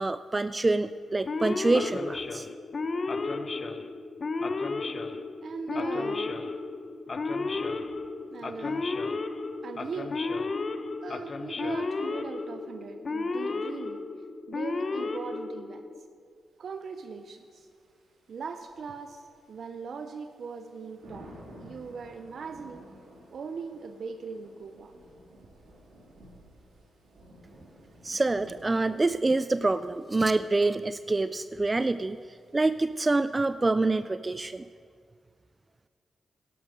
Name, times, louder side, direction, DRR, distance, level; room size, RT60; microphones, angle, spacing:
voice 1, 0.0-2.5 28.0-34.7, right 2 dB, 25° right, 13 dB, 0.3 m, -26 dB
Male speech man speaking / Siren, 1.3-16.0, left 3 dB, 45° left, 0.7 m, -33 dB
voice 2, 5.4-6.4 7.5-9.1 9.6-10.2 11.0-14.0 14.5-15.9 16.6-17.7 18.3-21.3 21.6-22.9 23.3-24.9, right 5 dB, 65° right, 8 dB, 0.6 m, -40 dB
Thunder / Rain, 16.7-33.3, right 1 dB, 85° right, 2.5 m, -54 dB
12.0 x 11.5 x 5.2 m, 2.1 s
cardioid pair, 70°, 0 cm